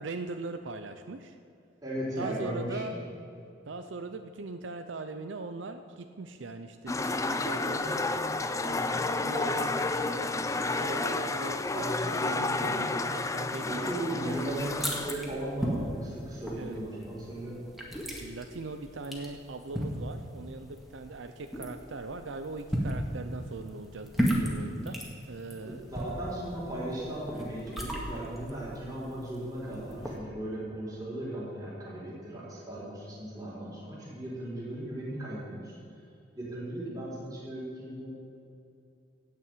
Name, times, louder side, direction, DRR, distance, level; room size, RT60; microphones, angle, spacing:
voice 1, 0.0-1.4 2.2-2.9 3.6-8.0 8.5-10.4 10.8-14.5 16.6-16.8 18.2-25.0 25.3-25.8, right 3 dB, 80° right, 7 dB, 0.6 m, -40 dB
voice 2, 1.8-3.0 13.7-17.6 25.6-35.8 36.4-38.1, right 1 dB, 20° right, -7 dB, 3.8 m, -37 dB
sound 1, 6.9-15.1, left 3 dB, 15° left, 0.5 m, -31 dB
sound 2, 14.2-30.2, equal, ahead, 1.8 m, -36 dB
16.5 x 5.7 x 9.1 m, 2.6 s
head